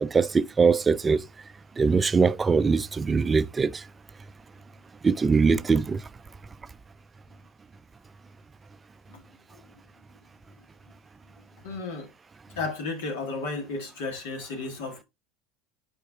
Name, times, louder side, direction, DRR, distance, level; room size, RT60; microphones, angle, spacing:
voice 1, 0.0-1.2 1.8-3.8 5.0-6.0, right 5 dB, 25° right, 0.4 m, -22 dB
voice 2, 11.6-12.1 12.5-15.0, left 3 dB, 75° left, 1.8 m, -33 dB
10.5 x 4.5 x 2.4 m
hypercardioid pair, 75°, 0 cm